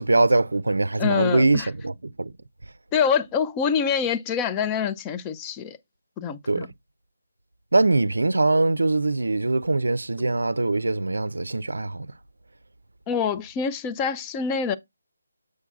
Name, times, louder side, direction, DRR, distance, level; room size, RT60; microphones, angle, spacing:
voice 1, 0.0-2.3 6.5-6.7 7.7-12.1, right 2 dB, 80° right, 0.4 m, -22 dB
voice 2, 1.0-1.7 2.9-5.8 6.2-6.7 13.1-14.8, left 6 dB, 15° left, 0.4 m, -25 dB
7.0 x 6.3 x 2.3 m
figure-of-eight pair, 160°, 0 cm